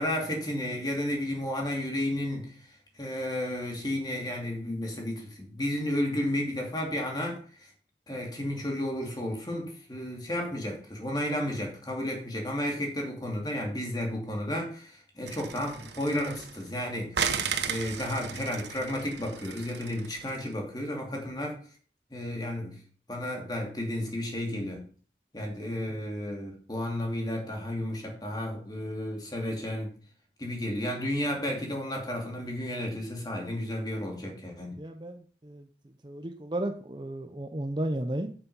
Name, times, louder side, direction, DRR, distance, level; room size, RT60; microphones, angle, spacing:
voice 1, 0.0-2.6 3.0-7.7 8.1-17.4 17.6-21.6 22.1-22.8 23.1-24.9 25.3-29.9 30.4-34.8, left 1 dB, 25° left, 2.7 m, -32 dB
sound 1, 15.3-16.7 17.1-20.4, right 6 dB, 85° right, 1.2 m, -35 dB
voice 2, 34.8-35.7 36.0-38.3, right 1 dB, 25° right, 0.7 m, -34 dB
8.8 x 7.2 x 5.6 m
head